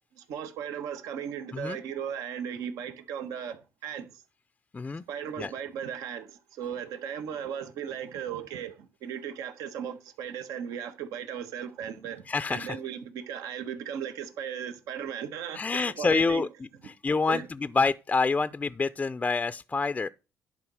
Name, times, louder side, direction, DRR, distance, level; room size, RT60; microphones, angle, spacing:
voice 1, 0.2-4.1 5.1-8.7 9.0-16.4 17.3-17.4, right 8 dB, 80° right, 1.3 m, -36 dB
voice 2, 4.7-5.0 5.4-5.5 12.3-12.8 15.5-16.5 16.8-20.1, left 4 dB, 25° left, 0.4 m, -27 dB
11.0 x 4.3 x 6.2 m
supercardioid pair, 75°, 6 cm